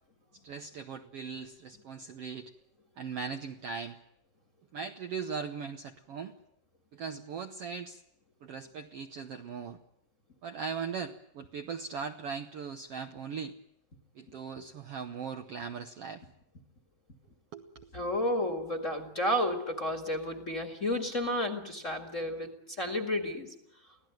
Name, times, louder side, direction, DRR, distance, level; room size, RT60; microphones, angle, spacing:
voice 1, 0.4-2.5 3.0-4.0 4.7-6.3 6.9-8.0 8.4-9.8 10.4-13.5 14.2-16.2 17.5-17.9, right 6 dB, 65° right, 5 dB, 1.5 m, -39 dB
voice 2, 17.9-23.5, left 1 dB, 30° left, 3 dB, 1.7 m, -32 dB
25.0 x 17.0 x 9.1 m, 0.79 s
omnidirectional pair, 3.9 m